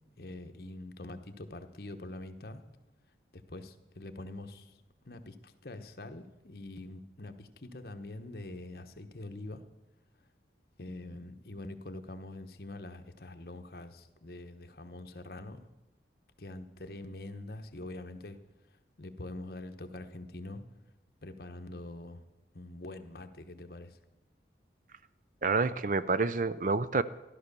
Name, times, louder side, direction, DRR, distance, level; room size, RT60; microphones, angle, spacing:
voice 1, 0.2-2.6 3.3-4.8 5.0-9.6 10.8-15.6 16.4-18.4 19.0-20.6 21.2-22.2 22.5-24.0, left 2 dB, 55° left, 7 dB, 1.1 m, -44 dB
voice 2, 25.4-27.0, right 4 dB, 45° right, 15 dB, 0.5 m, -28 dB
14.0 x 11.5 x 6.8 m, 0.97 s
head